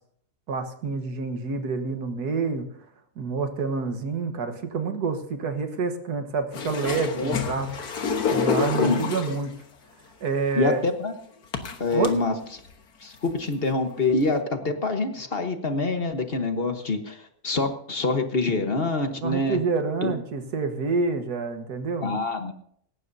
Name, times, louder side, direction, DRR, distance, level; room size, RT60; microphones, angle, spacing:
voice 1, 0.5-2.7 3.2-7.7 8.3-9.5 10.2-10.8 11.9-12.2 19.2-22.2, right 4 dB, 85° right, 7 dB, 1.9 m, -28 dB
sound 1, 6.5-9.5 10.5-10.6 11.5-12.1 12.7-12.8 13.1-13.5 14.3-14.4, left 6 dB, 75° left, 1.8 m, -28 dB
voice 2, 8.8-9.1 10.5-11.1 11.8-12.6 13.0-19.6 20.0-20.1 22.0-22.5, left 3 dB, 40° left, 6 dB, 1.4 m, -26 dB
18.0 x 15.5 x 2.7 m, 0.65 s
omnidirectional pair, 1.7 m